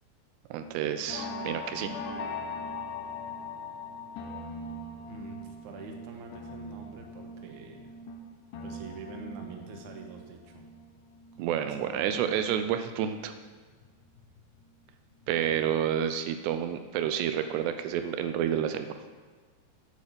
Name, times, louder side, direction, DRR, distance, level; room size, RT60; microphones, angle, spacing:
voice 1, 0.5-1.9 11.4-13.3 15.3-19.0, right 9 dB, 80° right, 8 dB, 2.7 m, -29 dB
sound 1, 0.6-12.8 13.1-14.8 15.1-15.5 15.8-15.9, left 2 dB, 75° left, 1.9 m, -41 dB
voice 2, 5.1-7.9 8.6-10.6 11.4-12.5, right 4 dB, 65° right, 2 dB, 2.0 m, -46 dB
10.5 x 7.5 x 6.8 m, 1.5 s
omnidirectional pair, 5.0 m